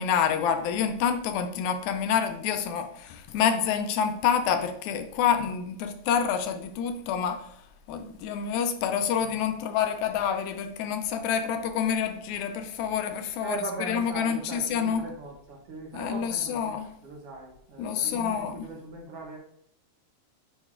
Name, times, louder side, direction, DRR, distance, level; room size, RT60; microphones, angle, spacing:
voice 1, 0.0-7.4 7.9-15.0 15.9-16.9 17.8-18.7, left 7 dB, 85° left, 7 dB, 2.0 m, -27 dB
voice 2, 13.4-19.4, right 3 dB, 65° right, 1 dB, 1.7 m, -39 dB
9.3 x 3.2 x 3.7 m, 0.70 s
omnidirectional pair, 3.4 m